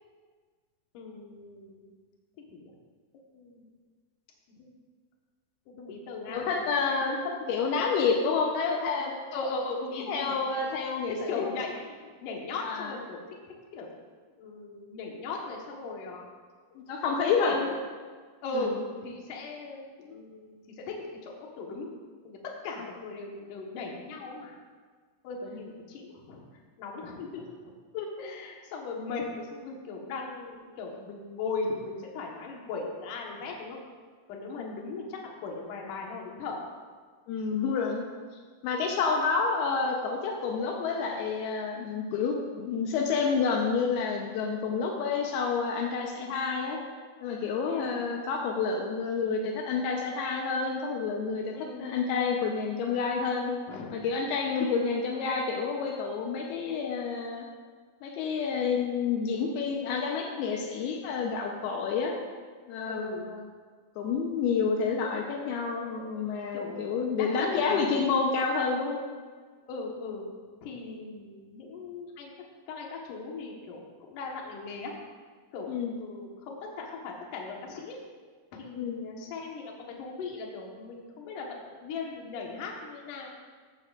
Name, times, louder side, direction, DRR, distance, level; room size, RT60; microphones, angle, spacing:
voice 1, 0.9-2.0 2.4-2.7 3.3-3.7 4.6-4.7 5.7-6.7 9.3-10.3 11.1-13.2 13.5-13.9 14.4-16.2 16.7-16.8 17.4-17.6 18.4-21.9 22.2-24.6 25.2-26.4 26.8-27.7 28.2-33.8 34.3-36.7 47.7-48.0 51.5-51.9 53.7-54.0 54.5-54.9 62.9-63.3 66.5-67.9 69.6-70.3 70.6-72.3 72.7-74.9 75.5-75.7 76.0-78.0 78.5-79.7 80.0-83.3, left 3 dB, 60° left, -1 dB, 2.7 m, -38 dB
voice 2, 6.3-7.2 7.5-9.1 9.9-11.5 12.7-12.9 16.8-17.7 18.5-18.7 27.2-27.4 27.9-28.3 34.6-34.8 37.3-38.0 38.6-46.8 47.2-53.5 53.9-57.5 58.0-62.1 62.7-63.4 64.0-69.0 75.7-76.0 78.7-79.1, left 5 dB, 80° left, 1 dB, 2.8 m, -29 dB
14.0 x 12.0 x 2.5 m, 1.5 s
omnidirectional pair, 4.5 m